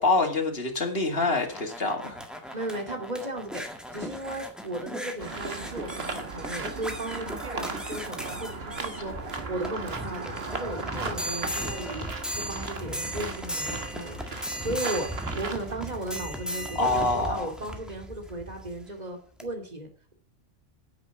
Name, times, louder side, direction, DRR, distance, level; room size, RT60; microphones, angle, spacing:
voice 1, 0.0-2.1 9.0-9.1 16.7-17.5, left 3 dB, 50° left, 4 dB, 2.6 m, -26 dB
sound 1, 1.2-18.8 19.4-19.5, equal, ahead, 1.8 m, -37 dB
voice 2, 2.5-3.6 3.9-12.0 12.3-20.1, right 1 dB, 30° right, 4 dB, 2.7 m, -36 dB
sound 2, 5.2-15.8, right 4 dB, 50° right, 1.7 m, -37 dB
10.0 x 8.6 x 7.2 m, 0.43 s
omnidirectional pair, 1.3 m